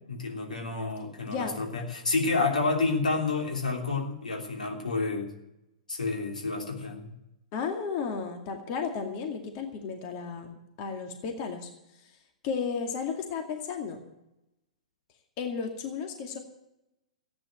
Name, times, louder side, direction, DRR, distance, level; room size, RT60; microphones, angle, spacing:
voice 1, 0.1-5.3 5.9-7.1, left 3 dB, 80° left, 2 dB, 3.1 m, -29 dB
voice 2, 7.5-11.7 12.0-12.1 12.4-14.0 15.4-16.4, left 5 dB, 40° left, 4 dB, 2.3 m, -33 dB
14.5 x 9.6 x 7.8 m, 0.90 s
figure-of-eight pair, 110°, 4 cm